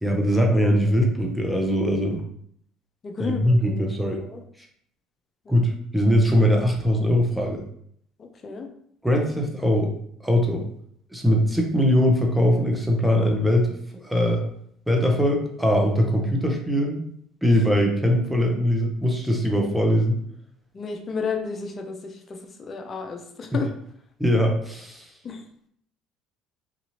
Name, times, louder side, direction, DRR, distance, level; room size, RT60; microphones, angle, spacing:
voice 1, 0.0-2.2 3.2-4.2 5.5-7.6 9.0-9.9 10.2-10.6 11.1-13.7 14.0-14.4 14.9-17.0 17.4-20.2 24.2-25.1, equal, ahead, 1 dB, 0.8 m, -21 dB
voice 2, 3.0-4.4 5.5-5.7 8.2-8.7 20.7-23.7 25.2-25.4, left 5 dB, 40° left, 4 dB, 0.5 m, -33 dB
2.7 x 2.4 x 2.9 m, 0.67 s
hypercardioid pair, 75°, 0 cm